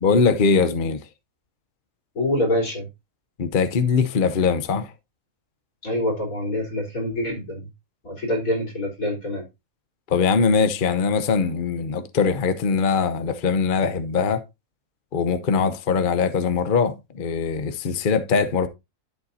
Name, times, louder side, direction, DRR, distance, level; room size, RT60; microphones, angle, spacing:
voice 1, 0.0-1.0 3.4-4.9 10.1-14.4 15.1-18.7, left 5 dB, 45° left, 0.9 m, -21 dB
voice 2, 2.2-2.9 5.8-7.6 8.0-9.4, left 1 dB, 85° left, 4.2 m, -25 dB
11.5 x 7.3 x 2.7 m
omnidirectional pair, 1.4 m